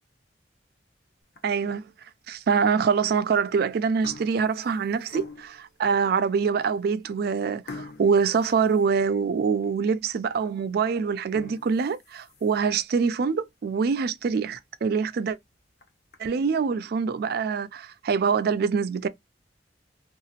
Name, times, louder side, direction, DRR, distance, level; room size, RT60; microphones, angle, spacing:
sound 1, 1.2-1.7 2.3-2.4 3.3-3.5 3.8-5.7 6.3-6.4 6.7-6.9 7.7-9.4 9.8-9.9 10.4-10.5 11.1-12.8 13.2-13.3 13.7-13.8 14.1-14.2 14.5-14.6 15.6-16.2, left 3 dB, 60° left, 0.7 m, -45 dB
voice 1, 1.4-1.8 2.3-15.4 16.2-19.1, right 5 dB, 60° right, 0.3 m, -25 dB
2.8 x 2.4 x 2.7 m
head